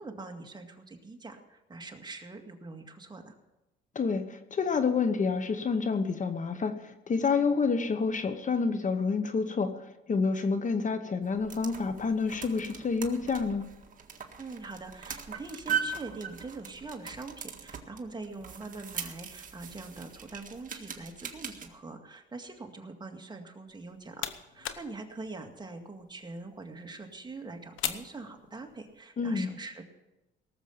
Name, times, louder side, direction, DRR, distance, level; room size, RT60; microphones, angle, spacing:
voice 1, 0.0-3.4 14.4-29.8, right 3 dB, 20° right, 3 dB, 2.1 m, -43 dB
voice 2, 3.9-13.7 29.2-29.5, left 4 dB, 40° left, 10 dB, 1.0 m, -28 dB
sound 1, 11.2-21.7, right 7 dB, 40° right, 1.7 m, -40 dB
sound 2, 23.7-29.0, left 10 dB, 85° left, 1.0 m, -42 dB
18.5 x 7.3 x 7.2 m, 0.99 s
cardioid pair, 90°, 20 cm